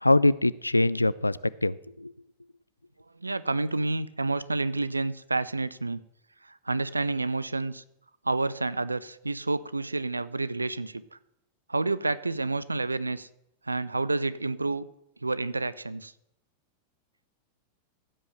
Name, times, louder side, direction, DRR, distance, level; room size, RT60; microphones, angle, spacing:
voice 1, 0.0-2.1, left 2 dB, 85° left, 19 dB, 0.3 m, -23 dB
voice 2, 3.2-6.0 6.5-7.8 8.2-11.0 11.7-13.3 13.7-14.9 15.2-16.1, right 3 dB, 80° right, 18 dB, 0.5 m, -29 dB
15.5 x 5.5 x 7.0 m, 0.81 s
figure-of-eight pair, 90°, 0 cm